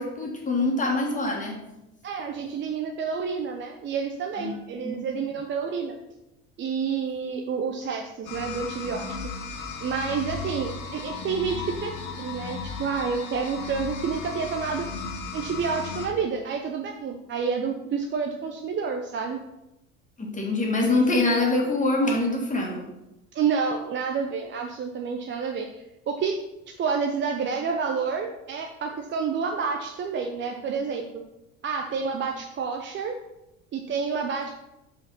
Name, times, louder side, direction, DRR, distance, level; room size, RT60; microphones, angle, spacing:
voice 1, 0.0-1.6 4.4-4.5 4.8-4.9 20.2-22.8, left 2 dB, 20° left, -1 dB, 2.0 m, -24 dB
voice 2, 2.0-6.0 6.6-9.2 9.8-14.9 15.3-19.4 23.3-26.4 26.8-31.1 31.6-33.1 33.7-34.5, right 5 dB, 30° right, 3 dB, 0.6 m, -29 dB
sound 1, 8.2-16.1, left 4 dB, 55° left, 1.6 m, -35 dB
5.1 x 4.9 x 5.8 m, 0.92 s
figure-of-eight pair, 70°, 41 cm